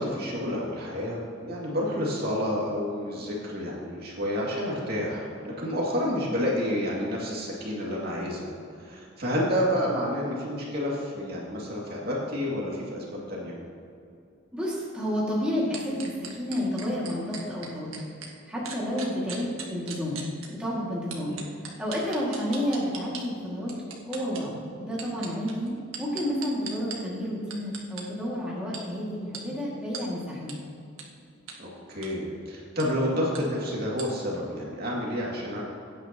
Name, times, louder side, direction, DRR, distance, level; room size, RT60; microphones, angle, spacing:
voice 1, 0.0-8.5 8.8-13.6 21.2-21.5 31.6-35.6, equal, 50° right, -4 dB, 2.4 m, -29 dB
voice 2, 14.5-18.1 18.5-20.2 20.6-21.3 21.8-23.7 24.1-30.5, equal, 5° right, -7 dB, 2.1 m, -30 dB
sound 1, 15.7-18.3 18.6-20.5 21.1-23.2 23.7-24.4 24.9-27.0 27.5-28.0 28.7-28.8 29.3-29.4 29.9-30.0 30.5-30.6 31.0-31.1 31.5-31.6 31.9-32.1 32.8-32.9 33.3-33.4 34.0-34.1, right 6 dB, 85° right, 1.5 m, -38 dB
17.0 x 9.4 x 3.0 m, 2.5 s
head